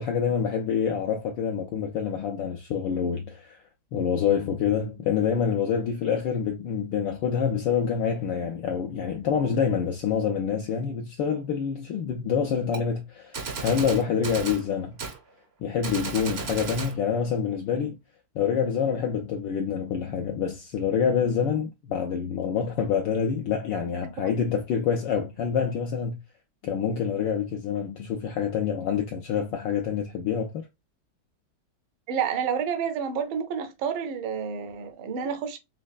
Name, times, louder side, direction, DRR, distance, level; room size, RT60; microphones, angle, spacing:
voice 1, 0.0-3.6 3.9-15.0 15.6-18.0 18.3-26.2 26.6-30.7, left 7 dB, 70° left, 1.2 m, -27 dB
Gunshot gunfire, 12.7-12.8 13.3-14.6 15.0-15.2 15.8-17.0, right 4 dB, 55° right, 0.7 m, -34 dB
voice 2, 32.1-35.6, right 7 dB, 80° right, 1.6 m, -29 dB
4.3 x 3.1 x 2.3 m
omnidirectional pair, 2.3 m